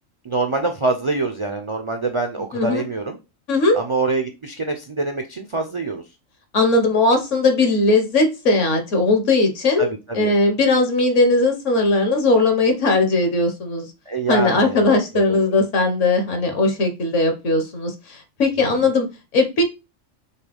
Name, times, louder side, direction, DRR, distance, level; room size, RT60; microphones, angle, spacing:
voice 1, 0.2-3.2 3.7-6.0 9.8-10.3 14.1-15.6, right 3 dB, 45° right, 0.4 m, -25 dB
voice 2, 2.5-2.8 3.5-3.8 6.5-9.9 10.1-13.9 14.3-19.1 19.3-19.6, left 2 dB, 65° left, 1.4 m, -18 dB
6.5 x 2.2 x 3.4 m
omnidirectional pair, 1.4 m